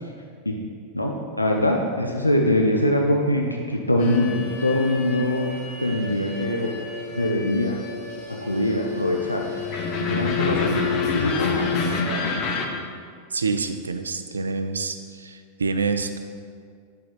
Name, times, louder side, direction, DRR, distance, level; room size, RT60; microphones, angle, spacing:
voice 1, 0.9-5.5 5.8-6.7 7.1-7.8 8.3-9.4 10.0-10.8 11.1-12.3, left 1 dB, 85° left, 1 dB, 0.4 m, -23 dB
sound 1, 4.0-12.7, left 5 dB, 40° left, 0.6 m, -28 dB
voice 2, 13.3-16.2, right 4 dB, 75° right, 8 dB, 0.3 m, -27 dB
7.5 x 6.1 x 2.2 m, 2.1 s
figure-of-eight pair, 90°, 0 cm